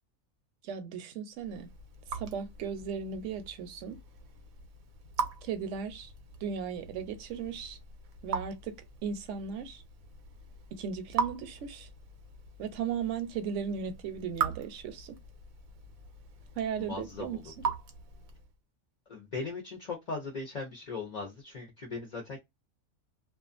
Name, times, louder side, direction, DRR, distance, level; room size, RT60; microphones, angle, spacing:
voice 1, 0.6-1.7 2.1-4.0 5.4-6.1 6.4-7.8 8.2-8.8 9.0-9.8 10.7-11.9 12.6-15.2 16.6-17.4, right 7 dB, 70° right, 0.9 m, -36 dB
Raindrop / Drip, 1.4-18.6, right 6 dB, 85° right, 1.1 m, -40 dB
voice 2, 16.8-17.5 19.1-22.4, left 4 dB, 45° left, 0.5 m, -39 dB
2.4 x 2.4 x 2.4 m
omnidirectional pair, 1.4 m